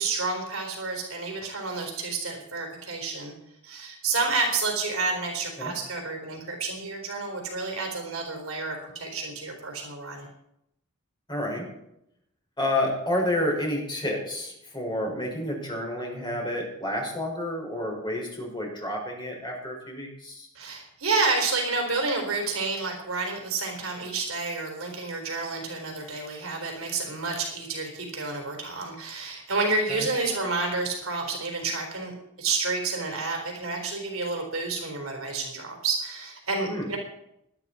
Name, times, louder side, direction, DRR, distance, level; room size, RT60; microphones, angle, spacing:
voice 1, 0.0-3.3 3.6-10.3 20.6-37.0, right 3 dB, 75° right, 2 dB, 4.0 m, -30 dB
voice 2, 11.3-11.7 12.6-20.5 29.9-30.0 36.7-36.9, left 1 dB, 25° left, -1 dB, 5.4 m, -30 dB
19.0 x 11.5 x 4.3 m, 0.80 s
head